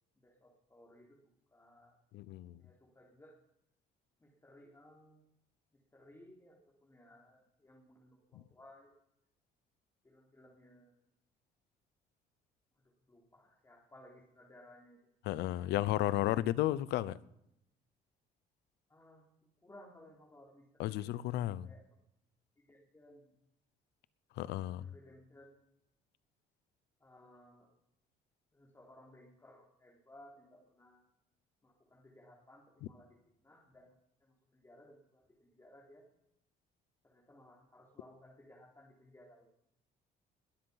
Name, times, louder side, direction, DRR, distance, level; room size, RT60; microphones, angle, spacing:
voice 1, 0.1-1.2 1.5-2.0 2.6-3.4 4.2-5.2 5.9-8.9 10.0-11.0 13.1-15.0 18.9-19.2 19.6-21.8 22.6-23.3 24.8-25.5 27.0-27.7 28.5-31.0 31.6-33.1 33.4-33.9 34.2-36.0 37.0-39.5, left 1 dB, 15° left, 3.4 m, -60 dB
voice 2, 2.1-2.6 15.2-17.2 20.8-21.7 24.4-24.9, left 14 dB, 80° left, 0.7 m, -33 dB
20.5 x 7.9 x 5.7 m
cardioid pair, 110°, 17 cm